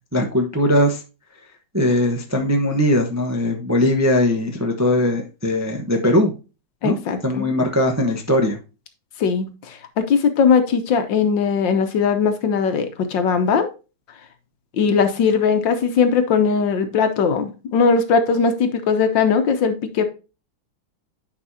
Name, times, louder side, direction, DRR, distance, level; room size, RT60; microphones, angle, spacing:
voice 1, 0.1-1.0 1.7-6.3 6.8-6.9 7.2-8.6, left 1 dB, 15° right, 2 dB, 0.7 m, -19 dB
voice 2, 6.8-7.5 9.2-13.7 14.7-20.0, left 5 dB, 65° left, 8 dB, 1.6 m, -19 dB
9.7 x 5.2 x 2.8 m, 0.30 s
omnidirectional pair, 2.2 m